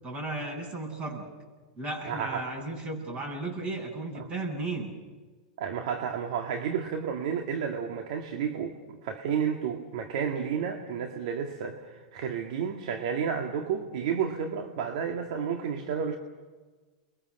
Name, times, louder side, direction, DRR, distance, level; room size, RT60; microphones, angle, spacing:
voice 1, 0.0-1.3 1.8-4.9, right 2 dB, 30° right, 3 dB, 7.8 m, -35 dB
voice 2, 2.0-2.5 4.1-4.3 5.6-16.2, right 7 dB, 65° right, 4 dB, 2.1 m, -31 dB
30.0 x 22.5 x 6.7 m, 1.3 s
hypercardioid pair, 110°, 4 cm